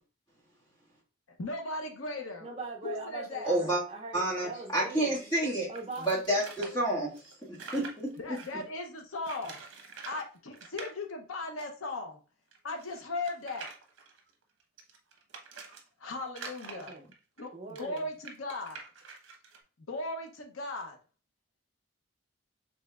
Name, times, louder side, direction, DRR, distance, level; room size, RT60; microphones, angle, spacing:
voice 1, 1.4-2.5 2.8-3.5 8.2-9.6 10.1-12.2 12.6-13.7 16.0-16.9 17.4-18.8 19.9-21.0, left 2 dB, 80° left, 0.7 m, -37 dB
voice 2, 2.4-5.3 5.7-6.2 16.7-17.1 17.5-18.0, right 3 dB, 30° right, 0.6 m, -41 dB
voice 3, 3.4-3.8 4.1-5.7 6.0-7.1 7.5-8.4, right 1 dB, 20° left, 1.6 m, -29 dB
sound 1, 5.7-8.6 9.2-10.3 10.5-10.9 11.6-11.7 11.9-12.0 12.5-15.8 16.3-19.6, right 4 dB, 70° right, 0.8 m, -46 dB
5.0 x 3.3 x 2.3 m
head